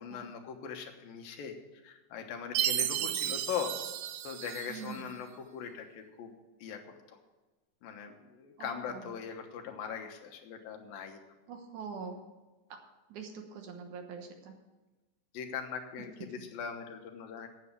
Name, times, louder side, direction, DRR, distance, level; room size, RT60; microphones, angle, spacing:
voice 1, 0.0-1.6 1.8-3.7 4.2-6.3 6.6-6.8 7.1-7.2 7.8-11.2 15.3-17.5, left 7 dB, 90° left, 4 dB, 2.9 m, -40 dB
Chime, 2.5-5.0, right 12 dB, 85° right, 1.7 m, -33 dB
voice 2, 4.7-5.1 8.6-9.0 11.5-12.2 12.7-12.8 13.1-14.5, right 5 dB, 65° right, 4 dB, 2.5 m, -44 dB
9.3 x 8.2 x 8.4 m, 1.2 s
omnidirectional pair, 4.0 m